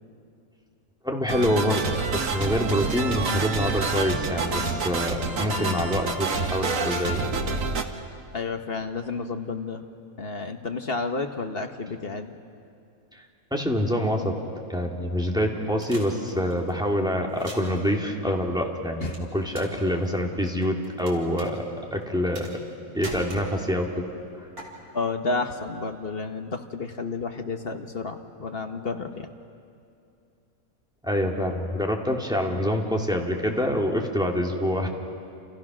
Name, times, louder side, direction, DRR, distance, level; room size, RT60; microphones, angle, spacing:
voice 1, 1.0-7.4 13.1-13.2 13.5-14.4 14.7-22.5 22.9-24.4 31.0-34.9, equal, 5° right, 0 dB, 2.3 m, -26 dB
sound 1, 1.3-7.8, right 4 dB, 65° right, 1.7 m, -28 dB
voice 2, 8.3-9.8 10.2-12.3 19.0-19.2 24.9-29.3, left 3 dB, 45° left, 6 dB, 1.3 m, -31 dB
sound 2, 15.8-16.7 17.3-17.8 19.1-19.8 20.0-21.1 21.4-21.5 22.3-22.7 23.0-23.8 24.6-24.7, right 2 dB, 80° right, 4.2 m, -39 dB
29.0 x 28.5 x 6.2 m, 2.6 s
omnidirectional pair, 1.5 m